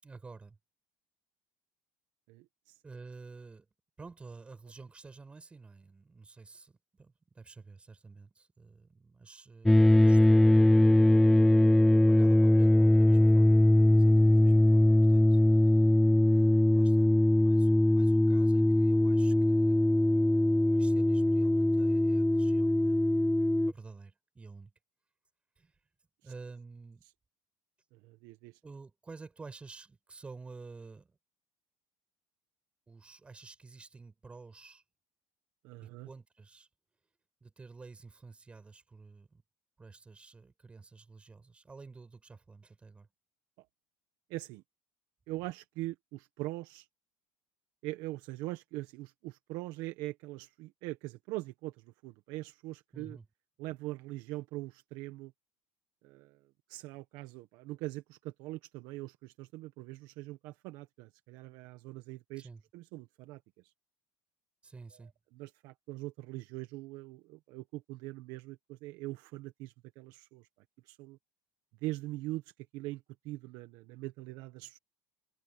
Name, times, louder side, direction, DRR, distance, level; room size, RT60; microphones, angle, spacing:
voice 1, 0.0-0.6 2.8-3.7 4.0-11.3 12.1-15.9 16.2-19.9 20.7-23.3 23.7-24.7 25.6-25.8 26.2-27.0 28.6-31.2 32.9-34.8 35.8-36.7 37.4-39.4 39.8-43.1 52.9-53.3 62.4-62.6 64.6-65.1, right 4 dB, 15° right, 5.6 m, -50 dB
voice 2, 2.3-2.8 14.4-14.5 26.2-26.3 27.9-28.6 35.6-36.1 44.3-44.6 45.3-46.9 47.8-53.2 53.6-55.3 56.0-56.4 56.7-63.7 65.3-70.5 70.8-71.2 71.8-74.8, right 18 dB, 65° right, 1.5 m, -42 dB
sound 1, 9.7-23.7, left 1 dB, 5° left, 0.4 m, -22 dB
cardioid pair, 140°, 7 cm